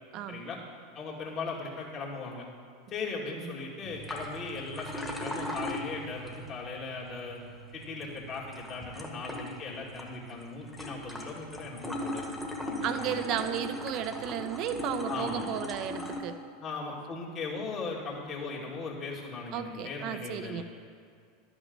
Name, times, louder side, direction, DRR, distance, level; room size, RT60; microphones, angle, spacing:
voice 1, 0.3-0.6 0.9-2.5 2.9-7.4 7.7-12.3 12.6-13.4 15.1-15.5 16.6-20.6, left 4 dB, 40° left, -3 dB, 2.4 m, -38 dB
sound 1, 3.8-16.2, left 1 dB, 5° left, 1.5 m, -39 dB
voice 2, 12.8-16.4 19.5-20.6, right 10 dB, 50° right, 10 dB, 0.6 m, -34 dB
11.5 x 6.2 x 5.4 m, 2.2 s
hypercardioid pair, 90°, 0 cm